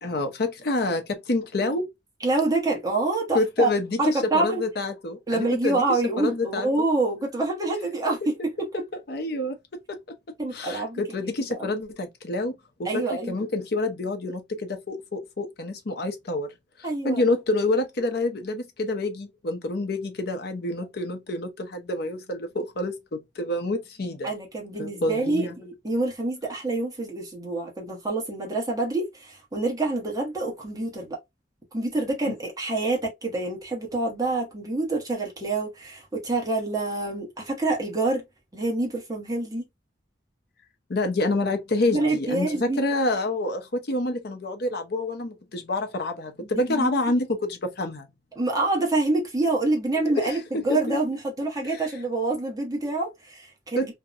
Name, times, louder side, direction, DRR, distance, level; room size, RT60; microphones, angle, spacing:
voice 1, 0.0-1.9 3.3-6.7 9.1-9.6 10.5-12.5 12.8-16.5 17.0-24.3 24.8-25.6 32.3-32.4 40.9-48.1 50.1-51.0 51.6-51.8 53.8-54.0, left 2 dB, 55° left, 0.6 m, -27 dB
voice 2, 2.2-3.7 4.0-4.6 5.3-8.7 10.4-11.0 11.5-11.7 12.8-13.4 16.8-17.2 24.2-31.2 31.7-38.2 38.5-39.7 41.9-42.8 46.5-46.9 48.4-54.0, right 2 dB, 20° right, 1.0 m, -27 dB
2.7 x 2.1 x 2.4 m
head